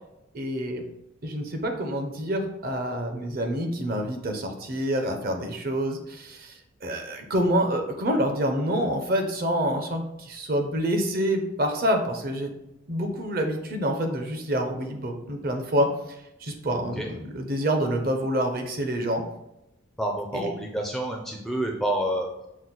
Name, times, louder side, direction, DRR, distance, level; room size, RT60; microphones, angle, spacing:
voice 1, 0.3-0.8 1.2-6.5 6.8-12.5 12.9-15.9 16.4-19.2 20.3-20.5, equal, 45° right, 4 dB, 0.7 m, -27 dB
voice 2, 20.0-22.5, right 1 dB, ahead, 0 dB, 0.4 m, -29 dB
6.2 x 2.1 x 3.9 m, 0.87 s
head